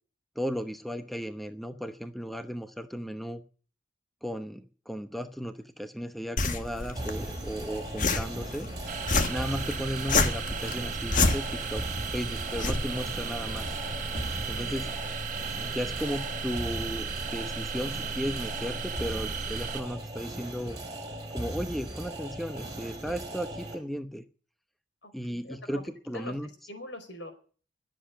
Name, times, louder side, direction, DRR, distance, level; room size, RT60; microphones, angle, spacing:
voice 1, 0.4-3.4 4.2-8.7 9.3-11.8 12.1-13.7 14.5-14.9 15.6-20.8 21.3-24.2 25.1-25.8 26.1-26.5, equal, ahead, 8 dB, 0.9 m, -35 dB
sound 1, 6.4-14.4, left 3 dB, 45° left, 1.6 m, -31 dB
sound 2, 7.0-23.8, right 1 dB, 20° right, 4.9 m, -38 dB
sound 3, 8.9-19.8, right 5 dB, 45° right, 1.5 m, -36 dB
voice 2, 14.6-15.0 25.0-25.8 26.1-26.3 26.7-27.3, left 1 dB, 80° left, 7 dB, 4.6 m, -43 dB
20.5 x 7.6 x 9.2 m, 0.42 s
head